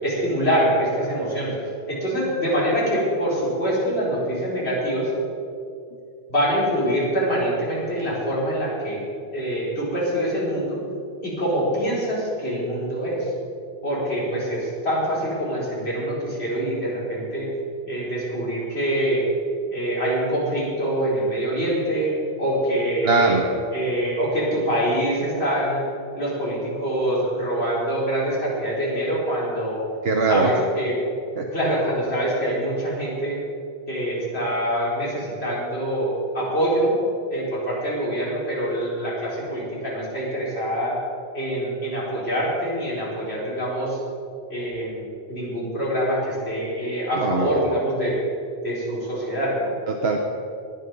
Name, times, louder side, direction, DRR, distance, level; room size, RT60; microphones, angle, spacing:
voice 1, 0.0-1.5 1.9-5.1 6.3-9.0 9.3-10.8 11.2-13.3 13.8-17.5 17.8-19.2 19.7-22.1 22.4-23.4 23.7-25.8 26.1-29.8 30.3-31.0 31.5-33.4 33.9-36.1 36.3-36.9 37.3-41.0 41.3-44.0 44.5-48.2 48.6-49.7, equal, 85° left, -7 dB, 4.7 m, -25 dB
voice 2, 23.0-23.4 30.0-30.5 31.4-31.5 47.2-47.6 49.9-50.2, right 4 dB, 75° right, 2 dB, 1.2 m, -21 dB
19.0 x 10.5 x 5.4 m, 2.5 s
omnidirectional pair, 1.0 m